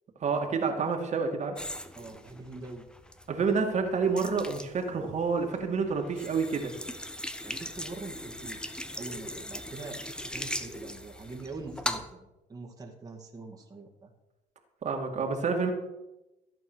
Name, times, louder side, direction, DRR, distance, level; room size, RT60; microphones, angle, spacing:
voice 1, 0.2-1.6 3.3-6.7 14.8-15.7, right 5 dB, 45° right, 3 dB, 2.4 m, -28 dB
sound 1, 1.6-12.1, left 1 dB, 5° left, 1.1 m, -39 dB
voice 2, 2.0-2.9 7.4-14.1, right 3 dB, 20° right, -1 dB, 2.2 m, -44 dB
15.0 x 8.5 x 6.3 m, 0.97 s
cardioid pair, 110°, 17 cm